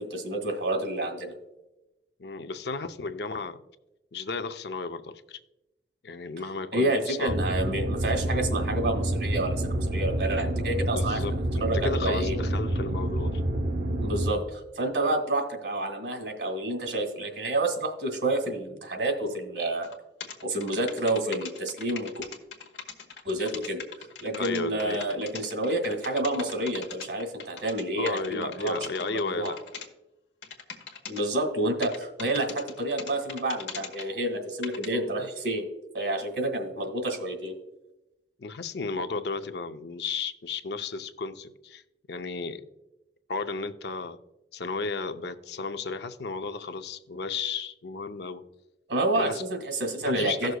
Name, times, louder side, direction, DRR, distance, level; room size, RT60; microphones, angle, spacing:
voice 1, 0.0-1.3 6.7-11.3 11.6-12.4 14.0-19.9 20.4-22.3 23.2-23.8 24.2-29.5 31.1-35.7 35.9-37.5 48.9-50.6, right 1 dB, 85° right, 3 dB, 1.8 m, -29 dB
voice 2, 2.2-3.6 4.1-5.4 6.0-7.5 10.9-13.4 24.3-25.0 28.0-29.6 38.4-41.8 42.1-42.6 43.3-44.2 44.5-48.4 49.1-49.4 50.0-50.5, left 4 dB, 65° left, 9 dB, 0.6 m, -34 dB
sound 1, 7.3-14.3, right 1 dB, 60° right, 0.7 m, -28 dB
sound 2, 19.8-19.9 20.2-29.9 30.4-31.2 31.8-34.1 34.6-34.9, left 6 dB, 85° left, 1.3 m, -40 dB
16.5 x 6.4 x 2.3 m, 0.97 s
head